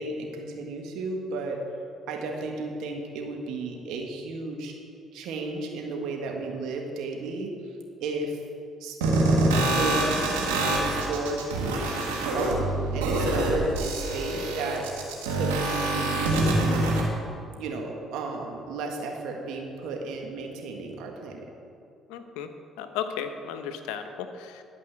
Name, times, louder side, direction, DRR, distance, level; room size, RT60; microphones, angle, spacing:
voice 1, 0.0-1.7 2.1-4.8 5.1-8.4 8.8-9.0 9.5-11.5 12.3-15.0 15.3-17.0 17.6-21.5, right 3 dB, 75° right, 1 dB, 1.7 m, -33 dB
sound 1, 9.0-17.0, right 2 dB, 90° right, 1.7 m, -25 dB
voice 2, 22.1-22.5 22.8-24.6, left 8 dB, 80° left, 7 dB, 0.8 m, -34 dB
12.0 x 5.4 x 8.3 m, 2.5 s
hypercardioid pair, 55°, 0 cm